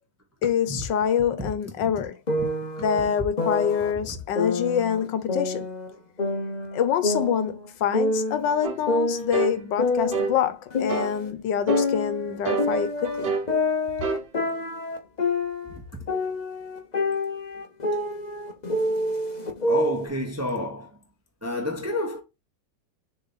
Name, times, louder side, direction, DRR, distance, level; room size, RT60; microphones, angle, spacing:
voice 1, 0.4-2.2 2.8-5.7 6.7-13.3, left 8 dB, 80° left, 1.5 m, -26 dB
sound 1, 2.3-3.9 4.4-5.9 6.2-8.4 8.9-11.3 11.7-15.8 16.1-20.1, left 2 dB, 30° left, 0.8 m, -27 dB
sound 2, 8.6-8.8 9.3-9.6 10.1-10.4 10.9-11.2 11.7-11.9 12.5-13.5 14.0-14.3, right 5 dB, 55° right, 0.6 m, -27 dB
voice 2, 19.7-20.9 21.4-22.2, left 1 dB, 10° right, 0.8 m, -29 dB
6.9 x 3.5 x 4.1 m
omnidirectional pair, 1.9 m